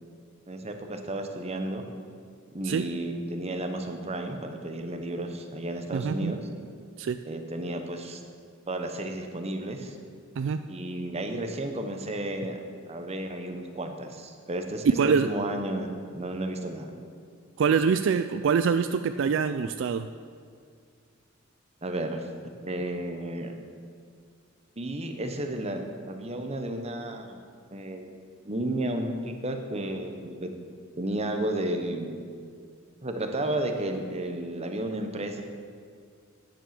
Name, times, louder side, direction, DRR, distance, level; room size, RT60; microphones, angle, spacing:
voice 1, 0.5-1.8 2.5-6.4 7.3-8.2 8.7-10.0 10.7-12.6 12.9-15.9 16.1-16.9 21.8-22.3 22.6-23.5 24.8-27.4 27.7-28.1 28.4-30.5 31.0-32.1 33.0-35.4, right 1 dB, 30° right, 5 dB, 1.1 m, -32 dB
voice 2, 5.9-6.3 7.0-7.2 10.4-10.6 14.8-15.3 17.6-20.1, right 6 dB, 65° right, 10 dB, 0.4 m, -24 dB
10.0 x 7.7 x 7.6 m, 2.1 s
head